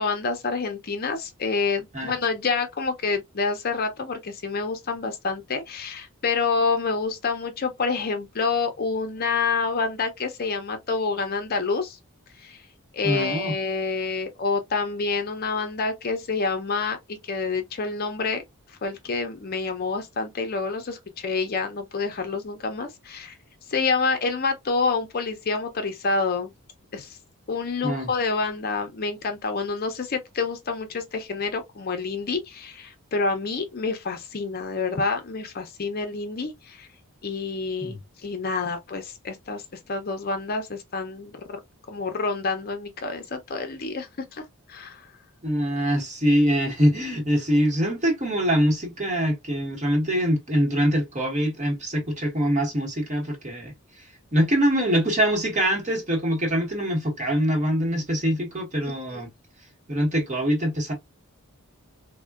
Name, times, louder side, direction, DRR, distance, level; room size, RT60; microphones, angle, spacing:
voice 1, 0.0-12.0 12.4-12.6 12.9-18.4 18.7-23.3 23.7-26.5 26.9-27.2 27.5-36.9 37.2-41.6 41.9-45.1 58.8-59.3, left 4 dB, 45° left, 0.5 m, -28 dB
voice 2, 13.0-13.6 27.8-28.1 37.8-38.0 45.4-53.7 54.0-59.3 59.9-60.9, equal, 30° right, 1.0 m, -24 dB
3.5 x 2.1 x 2.3 m
head